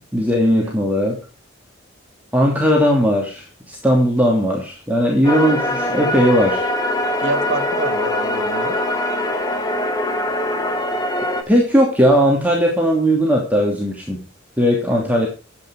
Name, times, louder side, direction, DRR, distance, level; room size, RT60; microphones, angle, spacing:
voice 1, 0.1-1.2 2.3-6.7 11.5-14.2 14.6-15.3, equal, 10° right, -1 dB, 2.8 m, -17 dB
sound 1, 5.2-11.4, left 1 dB, 20° left, 2.0 m, -22 dB
voice 2, 7.2-8.8 14.9-15.1, right 2 dB, 70° right, 8 dB, 2.2 m, -27 dB
13.0 x 9.0 x 4.8 m, 0.34 s
head